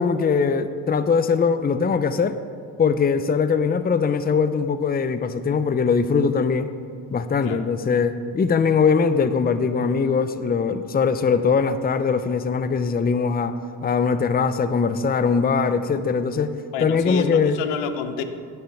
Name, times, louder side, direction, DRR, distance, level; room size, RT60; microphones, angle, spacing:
voice 1, 0.0-2.4 2.8-6.7 7.1-13.6 13.8-16.5 16.8-17.6, left 5 dB, 20° left, 11 dB, 0.7 m, -21 dB
voice 2, 16.7-18.2, left 6 dB, 80° left, 9 dB, 1.1 m, -28 dB
9.5 x 9.5 x 7.2 m, 2.2 s
supercardioid pair, 75°, 42 cm